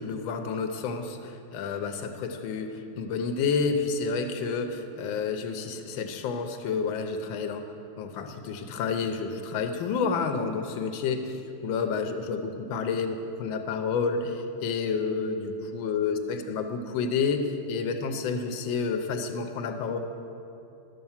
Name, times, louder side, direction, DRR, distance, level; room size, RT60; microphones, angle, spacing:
voice 1, 0.0-7.7 8.0-16.2 16.5-20.0, left 5 dB, 75° left, 6 dB, 1.5 m, -30 dB
12.0 x 6.1 x 7.2 m, 2.7 s
omnidirectional pair, 2.2 m